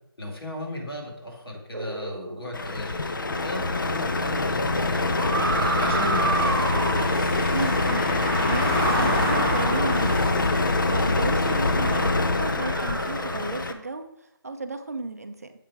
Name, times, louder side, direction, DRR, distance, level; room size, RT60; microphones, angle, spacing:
voice 1, 0.2-5.3 5.8-6.7, left 1 dB, 80° left, -1 dB, 2.6 m, -35 dB
sound 1, 1.7-2.8 5.1-7.3 9.0-10.3 11.4-13.8, right 3 dB, 65° right, 1.0 m, -31 dB
Truck, 2.5-13.7, left 2 dB, 60° left, 0.6 m, -25 dB
Car passing by / Engine, 5.4-12.1, equal, 25° left, 1.5 m, -30 dB
voice 2, 7.5-10.5 10.8-15.5, right 3 dB, 40° right, 8 dB, 0.5 m, -34 dB
7.5 x 5.0 x 4.6 m, 0.81 s
figure-of-eight pair, 175°, 13 cm